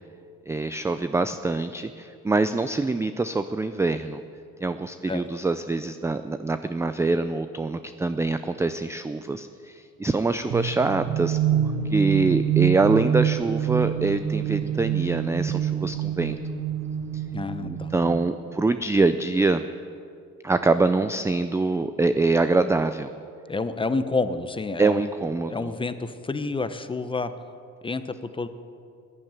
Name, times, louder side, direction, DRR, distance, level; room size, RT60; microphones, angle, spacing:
voice 1, 0.5-4.2 4.6-11.6 11.8-16.4 17.1-17.2 17.6-19.6 20.4-23.1 24.8-25.7, right 3 dB, 10° right, 10 dB, 0.4 m, -24 dB
sound 1, 10.5-18.3, right 9 dB, 55° right, 1.1 m, -26 dB
voice 2, 17.3-17.9 23.5-25.0 25.5-27.3 27.8-28.5, left 3 dB, 15° left, 11 dB, 0.8 m, -29 dB
14.5 x 11.0 x 8.9 m, 2.4 s
cardioid pair, 110°, 32 cm